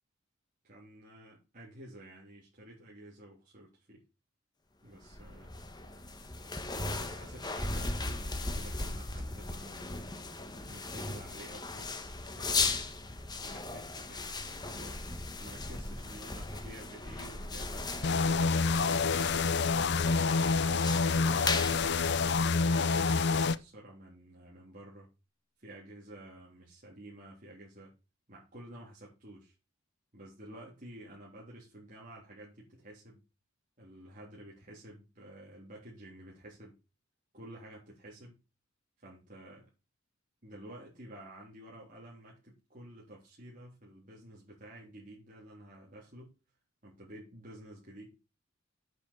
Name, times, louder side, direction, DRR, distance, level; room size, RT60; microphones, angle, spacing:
voice 1, 0.6-4.0 4.8-5.5 6.5-10.0 10.5-12.0 12.4-12.8 13.4-15.0 15.4-19.9 20.3-21.9 22.4-25.1 25.6-27.9 28.3-29.5 30.1-33.2 33.8-36.8 37.3-38.4 39.0-39.7 40.4-46.3 46.8-48.2, right 1 dB, 40° right, -5 dB, 3.6 m, -51 dB
sound 1, 5.0-22.8, left 3 dB, 20° left, 1.2 m, -37 dB
sound 2, 18.0-23.6, left 4 dB, 55° left, 0.6 m, -27 dB
8.3 x 6.5 x 6.9 m, 0.28 s
head